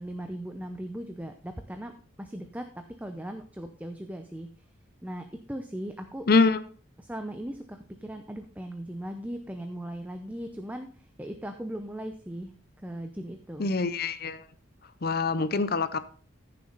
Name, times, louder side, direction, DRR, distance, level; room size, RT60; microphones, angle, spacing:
voice 1, 0.0-1.9 2.2-4.5 5.0-6.3 7.0-12.5 12.8-13.7, right 1 dB, 10° right, 6 dB, 0.7 m, -38 dB
voice 2, 6.3-6.6 13.6-14.4 15.0-16.0, left 4 dB, 50° left, 13 dB, 0.6 m, -24 dB
15.0 x 6.7 x 4.0 m, 0.42 s
head